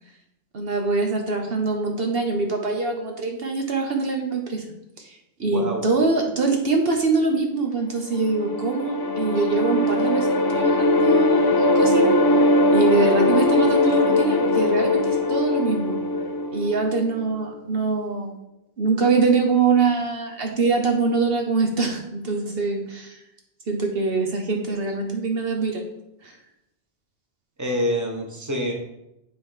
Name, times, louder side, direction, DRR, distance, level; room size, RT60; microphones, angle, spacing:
voice 1, 0.5-4.6 5.0-12.4 12.7-16.0 16.5-18.4 18.8-23.2 23.7-25.8 26.2-26.4, right 4 dB, 65° right, 3 dB, 1.1 m, -23 dB
voice 2, 5.4-5.9 27.6-28.7, equal, 15° right, 1 dB, 1.2 m, -26 dB
sound 1, 8.1-17.2, left 2 dB, 40° left, 0.3 m, -21 dB
9.2 x 3.7 x 4.8 m, 0.85 s
omnidirectional pair, 1.1 m